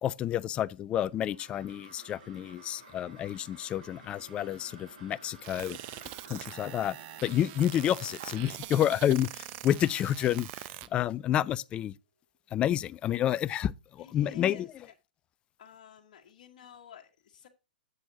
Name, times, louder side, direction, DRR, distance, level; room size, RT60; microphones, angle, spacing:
voice 1, 0.0-5.8 6.3-10.6 10.9-11.9 12.5-13.7 14.0-14.7, left 11 dB, 20° left, 0.3 m, -29 dB
sound 1, 1.1-11.7, right 2 dB, 55° right, 3.6 m, -54 dB
sound 2, 5.4-10.9, right 15 dB, 35° right, 0.5 m, -43 dB
voice 2, 14.0-14.9 15.6-17.5, left 8 dB, 50° left, 1.3 m, -52 dB
10.5 x 7.8 x 2.7 m
figure-of-eight pair, 115°, 5 cm